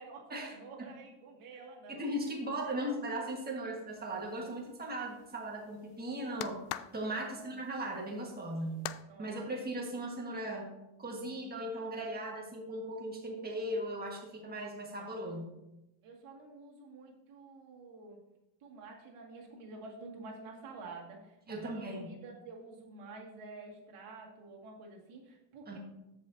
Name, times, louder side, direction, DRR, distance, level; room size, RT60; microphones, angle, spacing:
voice 1, 0.0-2.1 2.6-2.8 7.1-7.6 8.5-8.8 9.0-9.3 9.8-9.9 15.2-15.4 16.0-18.2 18.6-25.8, right 3 dB, 85° right, -1 dB, 2.1 m, -49 dB
voice 2, 1.9-6.6 6.9-8.8 9.2-10.7 11.0-15.4 21.5-22.1 25.7-25.8, right 1 dB, 20° right, -1 dB, 1.5 m, -38 dB
sound 1, 3.9-9.0, left 14 dB, 85° left, 0.5 m, -46 dB
14.5 x 5.2 x 2.7 m, 0.93 s
cardioid pair, 150°, 50 cm